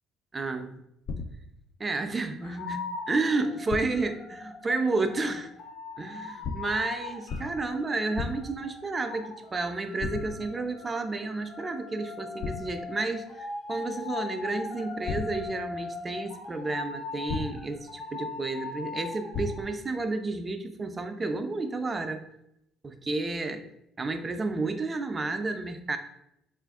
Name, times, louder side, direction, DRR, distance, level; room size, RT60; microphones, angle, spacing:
voice 1, 0.3-0.8 1.8-5.5 6.0-22.2 22.8-23.6 24.0-26.0, right 3 dB, 25° right, 7 dB, 0.4 m, -31 dB
sound 1, 1.1-1.6 3.7-4.2 6.4-6.9 7.3-7.7 8.2-8.7 10.0-10.6 12.4-12.9 15.1-15.7 17.3-17.8 19.3-19.9, left 4 dB, 50° left, 0.3 m, -36 dB
sound 2, 2.4-19.7, left 4 dB, 85° left, 1.1 m, -40 dB
3.9 x 2.5 x 3.5 m, 0.79 s
cardioid pair, 115°, 0 cm